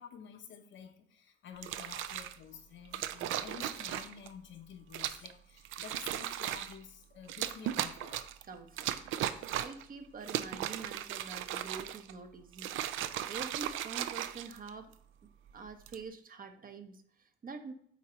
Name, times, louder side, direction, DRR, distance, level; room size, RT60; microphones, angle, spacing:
voice 1, 0.0-8.2, left 7 dB, 70° left, 5 dB, 0.9 m, -50 dB
sound 1, 1.6-2.4 2.9-4.3 4.9-5.3 5.6-6.8 7.3-8.4 8.8-9.8 10.2-12.1 12.5-14.9 15.7-16.0, right 11 dB, 85° right, 0.4 m, -37 dB
voice 2, 8.5-12.7 13.3-14.9 15.5-17.7, right 4 dB, 45° right, 7 dB, 0.8 m, -46 dB
8.2 x 2.8 x 4.3 m, 0.64 s
cardioid pair, 90°, 20 cm